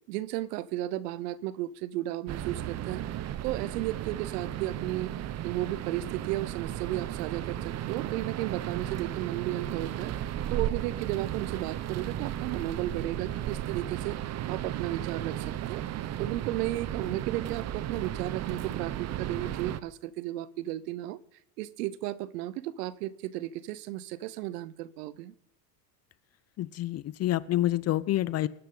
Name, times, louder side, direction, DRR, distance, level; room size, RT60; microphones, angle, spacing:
voice 1, 0.1-3.0 3.4-14.2 14.5-15.8 16.2-21.2 21.6-25.3, right 15 dB, 75° right, 19 dB, 0.9 m, -34 dB
sound 1, 2.3-19.8, right 12 dB, 35° right, 0.7 m, -35 dB
voice 2, 26.6-28.5, left 14 dB, 35° left, 18 dB, 0.5 m, -28 dB
19.0 x 10.5 x 3.9 m, 0.75 s
supercardioid pair, 105°, 48 cm